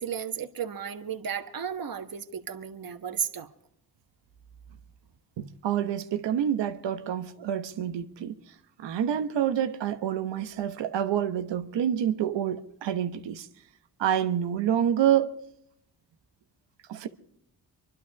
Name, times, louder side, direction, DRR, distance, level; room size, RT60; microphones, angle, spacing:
voice 1, 0.0-3.5, right 8 dB, 55° right, 1.5 m, -34 dB
voice 2, 5.4-8.3 8.8-13.5 14.0-15.4 16.9-17.1, right 10 dB, 85° right, 1.2 m, -27 dB
25.0 x 11.5 x 4.8 m
cardioid pair, 55°, 42 cm